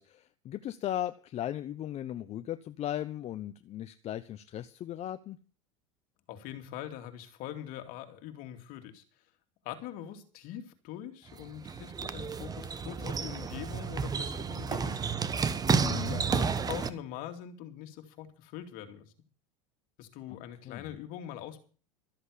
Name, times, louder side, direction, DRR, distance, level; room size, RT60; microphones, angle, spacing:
voice 1, 0.0-5.4 15.7-16.2 20.6-20.9, left 12 dB, 40° left, 11 dB, 0.9 m, -37 dB
voice 2, 6.3-9.0 9.6-15.2 15.9-19.1 20.0-21.6, left 11 dB, 60° left, 7 dB, 2.6 m, -43 dB
sound 1, 11.3-16.9, right 5 dB, 25° right, 1.2 m, -31 dB
13.5 x 7.9 x 8.2 m, 0.40 s
supercardioid pair, 105°, 17 cm